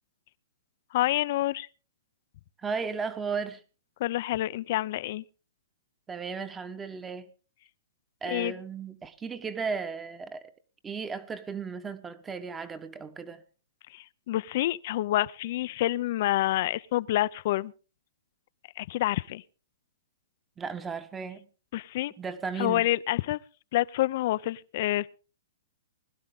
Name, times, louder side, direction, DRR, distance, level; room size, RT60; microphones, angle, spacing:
voice 1, 0.9-1.7 4.0-5.2 8.3-8.5 13.9-17.7 18.8-19.4 21.7-22.1 22.6-23.4 23.7-25.1, left 15 dB, 50° left, 0.6 m, -28 dB
voice 2, 2.6-3.6 6.1-7.3 8.2-10.5 10.8-13.4 20.6-21.5 22.2-22.9, right 5 dB, 10° right, 1.2 m, -35 dB
21.0 x 12.0 x 3.8 m
hypercardioid pair, 145°, 0 cm